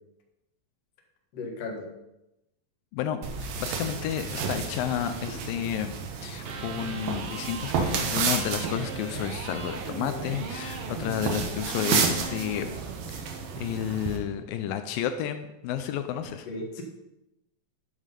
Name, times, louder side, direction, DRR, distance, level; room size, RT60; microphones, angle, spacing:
voice 1, 1.3-1.9 16.5-16.8, left 2 dB, 50° left, 1 dB, 2.4 m, -35 dB
voice 2, 2.9-5.9 6.2-12.7 13.1-16.5, left 10 dB, 85° left, 9 dB, 2.4 m, -31 dB
sound 1, 3.2-14.2, right 6 dB, 80° right, 3.0 m, -32 dB
Electric guitar, 6.4-14.4, right 4 dB, 60° right, 1.6 m, -39 dB
11.0 x 8.3 x 5.3 m, 0.90 s
omnidirectional pair, 4.0 m